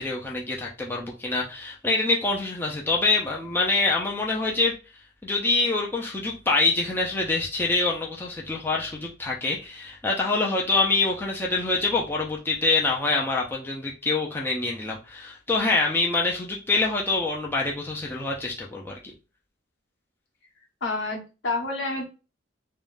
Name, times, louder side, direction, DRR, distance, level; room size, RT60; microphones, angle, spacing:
voice 1, 0.0-4.7 5.2-19.0, left 3 dB, 10° left, -2 dB, 0.4 m, -25 dB
voice 2, 20.8-22.1, left 3 dB, 70° left, 0 dB, 1.0 m, -29 dB
3.6 x 2.1 x 2.4 m, 0.31 s
head